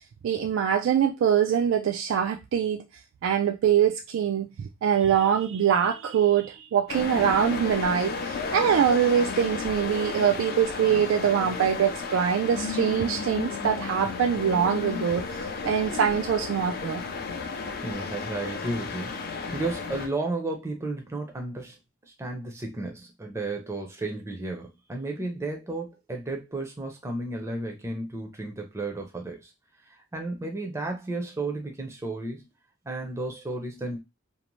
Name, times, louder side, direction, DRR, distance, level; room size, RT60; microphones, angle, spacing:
voice 1, 0.2-2.8 3.2-4.5 4.8-15.2 15.6-17.0, right 8 dB, 85° right, 0.3 m, -23 dB
sound 1, 6.9-20.1, left 4 dB, 50° left, 0.4 m, -33 dB
voice 2, 17.8-21.8 22.2-29.5 30.1-32.5 32.9-34.0, right 2 dB, 15° right, 0.5 m, -33 dB
2.6 x 2.0 x 3.0 m
head